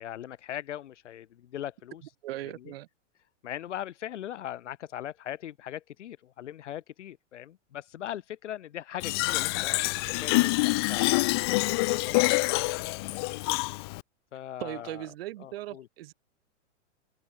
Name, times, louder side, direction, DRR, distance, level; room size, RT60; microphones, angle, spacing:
voice 1, 0.0-2.0 2.4-2.7 3.4-9.9 10.2-11.2 11.8-12.7 13.1-13.3 14.3-15.1 15.4-15.9, left 11 dB, 70° left, 3.2 m, -40 dB
voice 2, 2.2-2.9 14.6-16.1, right 15 dB, 50° right, 4.2 m, -38 dB
Fill (with liquid), 9.0-14.0, left 25 dB, 20° left, 0.5 m, -26 dB
hypercardioid pair, 160°, 37 cm